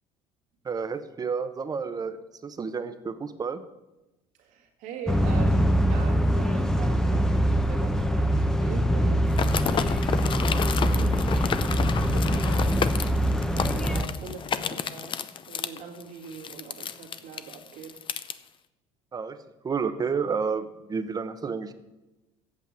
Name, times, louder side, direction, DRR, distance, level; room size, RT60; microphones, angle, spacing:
voice 1, 0.6-3.6 19.1-19.4 19.6-21.7, right 5 dB, 25° right, 10 dB, 0.9 m, -30 dB
voice 2, 4.4-10.0 10.3-13.3 13.6-15.2 15.5-18.0, right 6 dB, 70° right, 2 dB, 2.2 m, -42 dB
sound 1, 5.1-14.0, equal, 5° left, 0.8 m, -23 dB
sound 2, 9.3-18.3, left 7 dB, 35° left, 0.6 m, -31 dB
8.5 x 6.9 x 7.6 m, 1.0 s
supercardioid pair, 90°, 14 cm